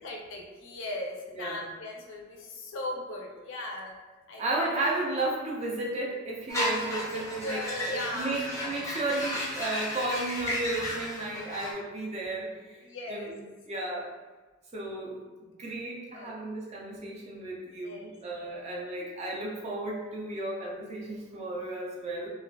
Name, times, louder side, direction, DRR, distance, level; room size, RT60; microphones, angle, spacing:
voice 1, 0.0-4.0 4.3-4.6 7.1-8.6 12.8-13.3 16.1-16.4 17.8-18.5, left 1 dB, 75° left, 0 dB, 0.5 m, -38 dB
voice 2, 1.3-1.7 4.4-12.8 13.1-13.4 13.7-14.1 14.7-15.2 15.6-22.3, right 2 dB, 35° right, -3 dB, 0.5 m, -33 dB
sound 1, 6.5-11.7, left 1 dB, 15° left, 0.5 m, -34 dB
2.3 x 2.3 x 2.2 m, 1.3 s
head